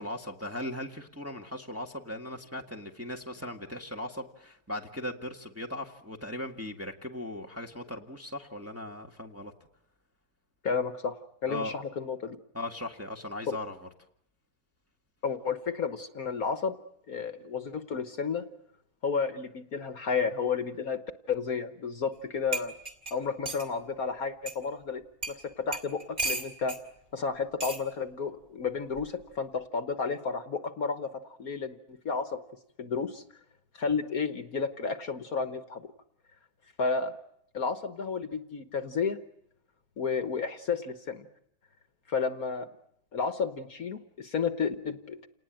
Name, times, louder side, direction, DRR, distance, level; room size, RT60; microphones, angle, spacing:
voice 1, 0.0-9.5 11.5-11.8 12.5-13.8, left 1 dB, 10° right, 2 dB, 1.5 m, -38 dB
voice 2, 10.6-11.2 11.4-12.4 13.5-13.6 15.2-16.7 17.1-18.4 19.0-21.0 21.3-22.7 23.1-26.8 27.1-32.4 32.8-33.2 33.8-35.9 36.8-37.2 37.5-39.2 40.0-41.3 42.1-42.7 43.1-45.3, left 5 dB, 55° left, 10 dB, 1.6 m, -32 dB
sound 1, 22.1-22.2 22.5-23.7 24.5-24.6 25.2-25.4 25.7-26.8 27.6-27.8 28.9-29.2, right 2 dB, 25° right, 2.7 m, -34 dB
29.0 x 19.5 x 9.0 m, 0.75 s
omnidirectional pair, 2.0 m